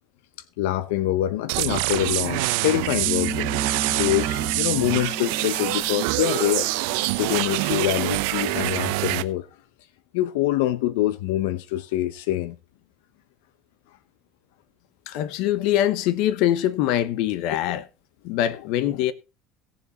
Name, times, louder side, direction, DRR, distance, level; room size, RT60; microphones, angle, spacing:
voice 1, 0.6-3.5 4.0-6.7 7.2-9.5 10.1-12.5 17.5-17.8 18.8-19.0, left 13 dB, 90° left, 0.9 m, -25 dB
sound 1, 1.5-9.2, right 19 dB, 75° right, 0.8 m, -25 dB
Piano, 3.0-8.2, right 1 dB, 5° right, 1.1 m, -36 dB
voice 2, 15.1-17.8 18.2-19.1, left 12 dB, 60° left, 1.0 m, -23 dB
17.5 x 7.2 x 4.1 m
cardioid pair, 160°, 0 cm